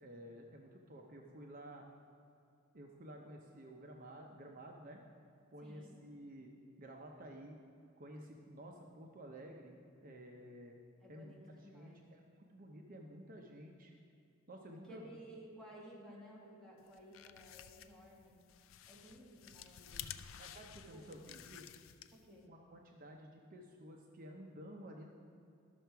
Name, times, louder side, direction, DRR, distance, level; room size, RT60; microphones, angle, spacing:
voice 1, 0.0-1.8 2.7-5.0 5.5-6.5 6.8-7.6 8.0-10.7 11.1-11.4 11.7-13.9 14.5-15.1 20.4-21.7 22.5-25.1, right 1 dB, 45° right, 1 dB, 0.7 m, -52 dB
voice 2, 5.6-6.0 11.0-12.0 14.8-18.4 18.8-20.1 20.9-21.0 22.1-22.5, right 1 dB, ahead, -6 dB, 1.9 m, -56 dB
sound 1, 16.9-22.4, left 10 dB, 70° left, 0.4 m, -52 dB
12.0 x 6.7 x 4.6 m, 2.6 s
head